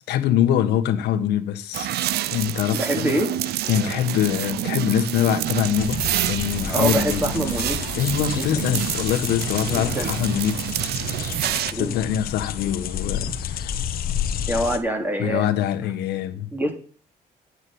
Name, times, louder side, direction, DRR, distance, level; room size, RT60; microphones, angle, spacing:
voice 1, 0.1-1.9 2.3-3.2 3.7-7.2 8.0-11.3 11.7-13.7 15.2-16.5, left 10 dB, 80° left, 1.6 m, -24 dB
sound 1, 1.7-11.7, right 13 dB, 70° right, 0.7 m, -27 dB
voice 2, 2.7-3.3 6.7-7.8 8.3-8.5 9.6-10.1 11.7-12.0 14.5-15.5 16.5-16.7, equal, 10° right, 3.0 m, -25 dB
sound 2, 5.8-14.8, left 9 dB, 60° left, 1.3 m, -30 dB
9.6 x 6.3 x 8.6 m
cardioid pair, 110°, 17 cm